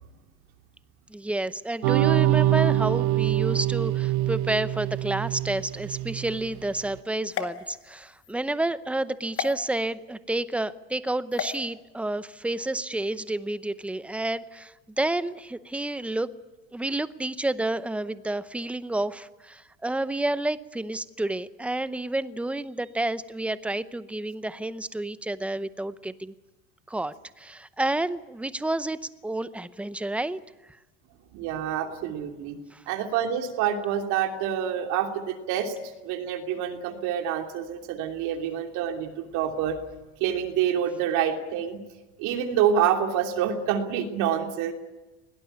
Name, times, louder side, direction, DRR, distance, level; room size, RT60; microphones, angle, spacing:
voice 1, 1.1-16.3 16.7-26.3 26.9-30.4 32.7-32.8, right 2 dB, 5° right, 14 dB, 0.7 m, -30 dB
sound 1, 1.8-6.6, right 15 dB, 80° right, 0.9 m, -24 dB
sound 2, 7.3-8.3 9.4-9.5 11.3-11.6, left 10 dB, 45° left, 2.1 m, -34 dB
voice 2, 31.3-32.6 32.9-35.7 36.0-39.8 40.2-41.8 42.2-44.7, right 9 dB, 60° right, 4 dB, 3.0 m, -27 dB
21.5 x 18.0 x 10.0 m, 1.1 s
cardioid pair, 140°, 33 cm